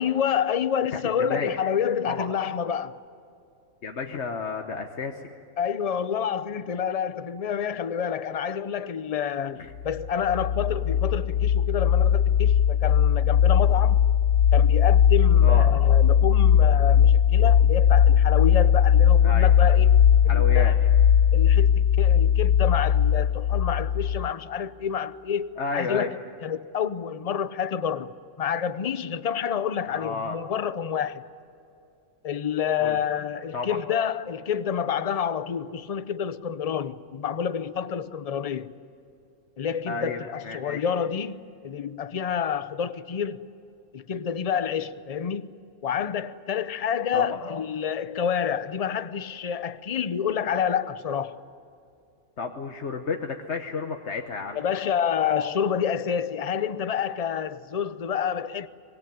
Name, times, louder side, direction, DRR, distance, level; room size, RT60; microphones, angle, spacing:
voice 1, 0.0-2.9 5.6-14.0 14.5-20.9 21.3-31.2 32.2-38.7 39.6-43.5 43.9-45.6 45.8-51.4 54.5-58.7, left 8 dB, 40° left, 0.6 m, -28 dB
voice 2, 3.8-5.2 9.4-9.7 15.4-15.7 19.2-19.5 20.3-20.8 25.6-26.1 29.9-30.4 32.8-33.0 33.5-33.8 39.9-40.8 47.1-47.4 52.4-54.6, left 4 dB, 55° left, 1.4 m, -32 dB
sound 1, 9.8-24.3, left 9 dB, 80° left, 1.2 m, -19 dB
24.5 x 21.5 x 9.4 m
omnidirectional pair, 1.4 m